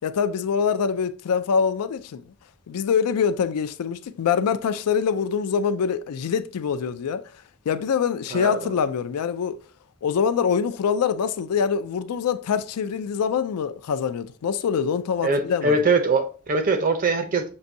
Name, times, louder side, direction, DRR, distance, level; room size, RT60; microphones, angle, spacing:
voice 1, 0.0-2.2 2.7-7.3 7.7-9.6 10.0-15.8, left 6 dB, 90° left, 0.4 m, -24 dB
voice 2, 8.3-8.7 15.2-17.4, right 3 dB, 40° right, 0.6 m, -22 dB
6.3 x 2.6 x 2.6 m
head